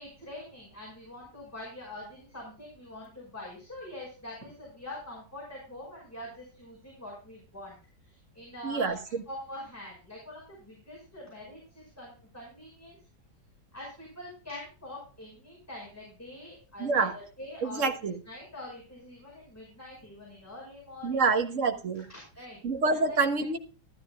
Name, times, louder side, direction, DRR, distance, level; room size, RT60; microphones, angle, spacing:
voice 1, 0.0-7.8 8.0-9.0 9.3-13.0 13.7-21.3 21.9-22.6 22.9-23.5, left 1 dB, 10° left, -4 dB, 5.6 m, -44 dB
voice 2, 8.6-9.2 16.8-17.1 17.6-18.2 21.0-22.0 22.6-23.6, right 4 dB, 45° right, 5 dB, 1.6 m, -27 dB
13.5 x 13.0 x 2.4 m, 0.37 s
omnidirectional pair, 1.9 m